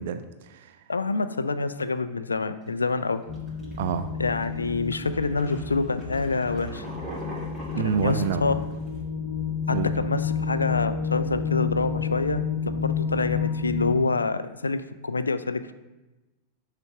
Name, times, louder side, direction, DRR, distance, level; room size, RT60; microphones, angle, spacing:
voice 1, 0.0-0.8 3.8-4.1 7.7-8.5 9.7-9.9, right 7 dB, 55° right, 9 dB, 0.3 m, -28 dB
voice 2, 0.9-3.2 4.2-6.8 7.8-8.5 9.7-12.4 12.7-15.7, left 3 dB, 75° left, 12 dB, 0.3 m, -27 dB
sound 1, 2.7-2.9 3.3-3.8 4.4-4.6 4.9-9.0, right 1 dB, 20° right, 2.1 m, -41 dB
sound 2, 3.3-13.9, left 6 dB, 40° left, 0.9 m, -30 dB
6.6 x 3.3 x 4.7 m, 1.1 s
figure-of-eight pair, 90°, 0 cm